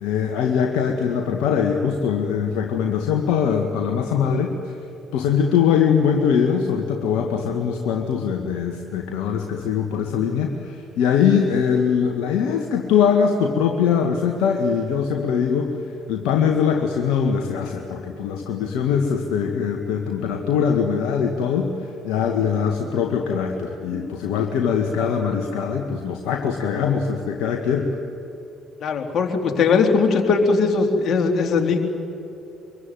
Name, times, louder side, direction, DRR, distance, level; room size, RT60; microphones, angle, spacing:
voice 1, 0.0-4.6 5.1-15.7 16.1-27.9, left 7 dB, 70° left, 2 dB, 1.8 m, -22 dB
voice 2, 28.8-31.8, left 4 dB, 50° left, 2 dB, 3.5 m, -19 dB
24.5 x 23.0 x 9.4 m, 3.0 s
hypercardioid pair, 50°, 0 cm